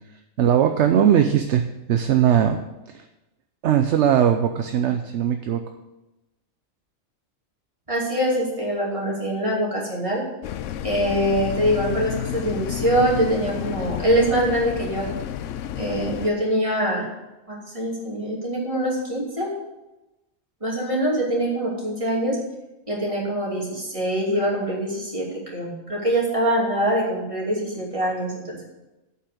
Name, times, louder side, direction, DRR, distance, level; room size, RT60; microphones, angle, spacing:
voice 1, 0.4-2.6 2.9-3.0 3.6-5.6, right 9 dB, 70° right, 6 dB, 0.9 m, -19 dB
voice 2, 7.9-10.2 10.8-15.1 15.8-17.1 17.5-19.5 20.6-22.4 22.9-28.6, right 1 dB, 25° right, -4 dB, 2.7 m, -24 dB
sound 1, 10.4-16.3, left 10 dB, 75° left, 0.9 m, -31 dB
8.3 x 5.7 x 7.7 m, 1.0 s
omnidirectional pair, 1.3 m